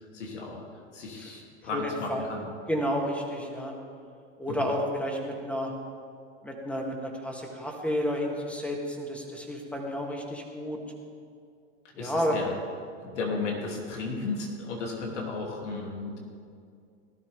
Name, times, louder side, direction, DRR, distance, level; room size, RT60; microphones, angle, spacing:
voice 1, 0.1-2.5 4.5-4.7 12.0-12.5 13.0-16.2, left 3 dB, 85° left, -1 dB, 3.0 m, -34 dB
voice 2, 1.7-2.3 2.7-3.7 4.4-5.7 6.4-10.8 11.9-12.4, equal, 5° left, 0 dB, 2.4 m, -31 dB
18.0 x 12.5 x 3.6 m, 2.3 s
hypercardioid pair, 100°, 35 cm